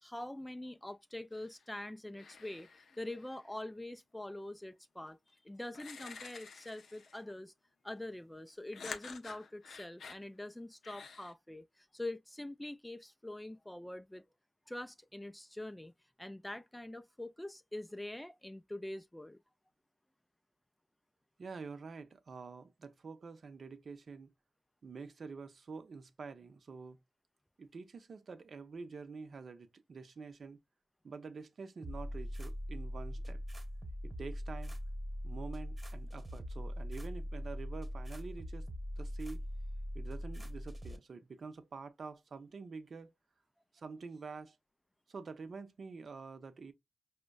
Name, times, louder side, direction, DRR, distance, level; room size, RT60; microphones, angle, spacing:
voice 1, 0.0-7.5 7.8-14.2 14.7-15.9 16.2-19.4, left 1 dB, 10° left, 0.3 m, -44 dB
sound 1, 1.3-1.7 2.1-3.5 5.1-5.2 5.7-7.3 8.7-10.2 10.8-11.3, left 5 dB, 70° left, 0.5 m, -50 dB
voice 2, 21.4-24.3 24.8-27.0 27.6-30.6 31.0-33.4 34.0-34.7 35.2-38.7 39.0-39.4 39.9-43.1 43.7-44.6 45.1-46.7, right 4 dB, 60° right, 0.5 m, -47 dB
sound 2, 31.8-41.0, equal, 30° right, 1.1 m, -41 dB
5.0 x 2.1 x 2.3 m
supercardioid pair, 40°, 0 cm